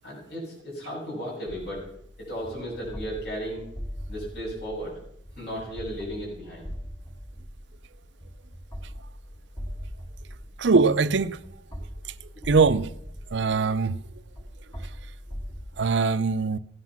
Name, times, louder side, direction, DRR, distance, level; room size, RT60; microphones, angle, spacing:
voice 1, 0.0-1.9 2.2-3.6 4.1-5.0 5.4-6.6, equal, 65° left, 6.9 m, -35 dB
sound 1, 1.5-15.8, equal, 20° left, 1.9 m, -41 dB
voice 2, 10.6-11.4 12.4-12.9 13.3-14.0 15.8-16.6, right 4 dB, 75° right, 0.6 m, -21 dB
16.5 x 9.8 x 5.9 m
head